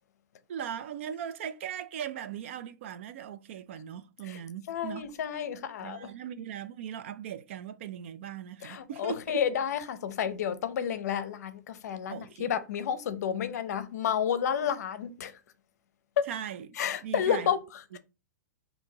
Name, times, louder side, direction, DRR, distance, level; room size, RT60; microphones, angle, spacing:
voice 1, 0.5-5.0 5.8-9.4 12.1-12.5 16.3-16.7 17.0-17.5 17.9-18.0, right 9 dB, 40° right, 0.3 m, -39 dB
voice 2, 4.7-6.1 8.6-15.3 16.2-16.3 16.8-18.0, left 8 dB, 60° left, 0.6 m, -31 dB
4.5 x 2.6 x 3.7 m
supercardioid pair, 175°, 10 cm